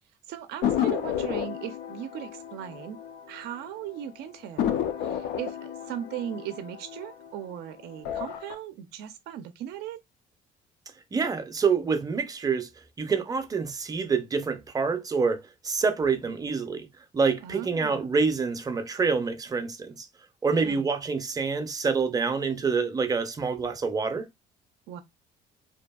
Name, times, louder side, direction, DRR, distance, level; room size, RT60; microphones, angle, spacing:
voice 1, 0.3-3.0 3.3-10.0 17.4-18.1 20.6-20.9 24.9-25.0, right 10 dB, 80° right, 0.4 m, -38 dB
sound 1, 0.6-3.7 4.0-4.1 4.6-7.5 7.9-8.5, left 10 dB, 80° left, 0.4 m, -31 dB
voice 2, 11.1-12.7 13.0-16.9 17.1-20.1 20.4-24.2, right 5 dB, 20° right, 0.5 m, -27 dB
2.7 x 2.5 x 2.2 m
cardioid pair, 110°, 17 cm